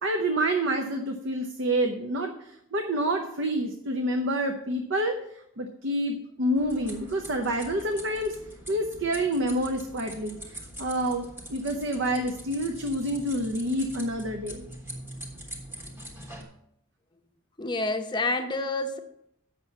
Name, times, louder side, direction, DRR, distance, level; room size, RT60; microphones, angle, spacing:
voice 1, 0.0-5.2 5.6-8.4 8.7-14.6, right 1 dB, 60° right, 4 dB, 0.8 m, -28 dB
sound 1, 6.5-16.4, right 1 dB, 10° right, 1.2 m, -43 dB
voice 2, 17.6-19.0, left 2 dB, 20° left, 6 dB, 0.7 m, -28 dB
7.6 x 5.8 x 6.8 m, 0.76 s
head